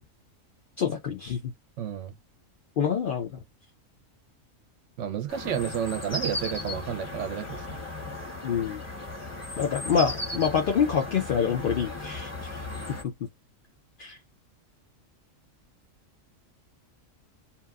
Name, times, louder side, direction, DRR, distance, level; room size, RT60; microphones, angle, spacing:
voice 1, 0.8-1.4 2.8-3.3 8.4-8.8 9.6-12.6 14.0-14.2, left 7 dB, 65° left, 0.5 m, -26 dB
voice 2, 1.8-2.2 5.0-7.7, right 9 dB, 70° right, 0.9 m, -31 dB
sound 1, 5.3-13.0, left 2 dB, 15° left, 0.6 m, -36 dB
2.8 x 2.3 x 2.3 m
omnidirectional pair, 1.4 m